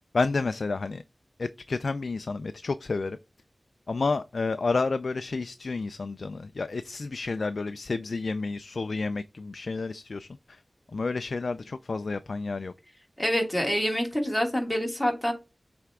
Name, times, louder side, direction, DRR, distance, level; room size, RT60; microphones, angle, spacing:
voice 1, 0.1-1.0 1.4-3.2 3.9-10.6 10.9-12.7, left 3 dB, 75° left, 0.3 m, -30 dB
voice 2, 13.2-15.3, equal, 10° left, 2.7 m, -26 dB
7.9 x 3.4 x 3.6 m
cardioid pair, 45°, 0 cm